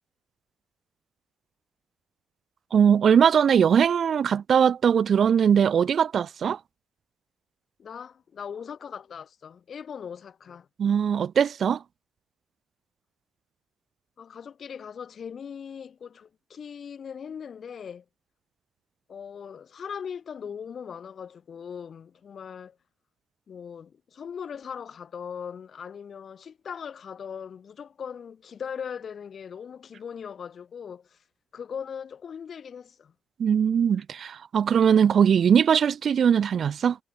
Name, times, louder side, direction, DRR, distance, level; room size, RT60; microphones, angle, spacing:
voice 1, 2.7-6.6 10.8-11.8 33.4-37.0, right 7 dB, 55° right, 0.5 m, -20 dB
voice 2, 7.8-10.7 14.2-18.0 19.1-22.8 23.5-31.2 31.5-33.1, left 7 dB, 50° left, 3.1 m, -39 dB
cardioid pair, 90°, 0 cm